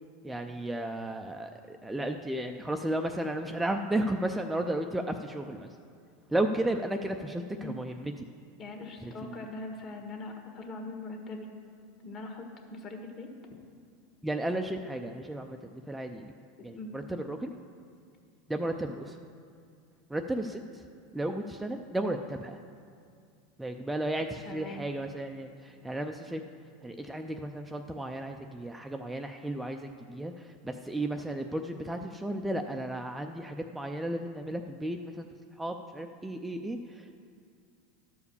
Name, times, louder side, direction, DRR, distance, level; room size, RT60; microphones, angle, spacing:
voice 1, 0.2-5.8 6.3-8.3 9.0-9.4 14.2-16.3 16.6-17.5 18.5-19.2 20.1-20.8 21.1-22.6 23.6-26.4 26.8-35.3 35.6-37.2, right 1 dB, 5° right, 4 dB, 0.4 m, -34 dB
voice 2, 8.6-11.5 12.0-13.3 16.7-16.9 24.4-24.9, left 2 dB, 40° left, 3 dB, 1.5 m, -41 dB
12.0 x 4.8 x 6.8 m, 2.3 s
supercardioid pair, 125°, 0 cm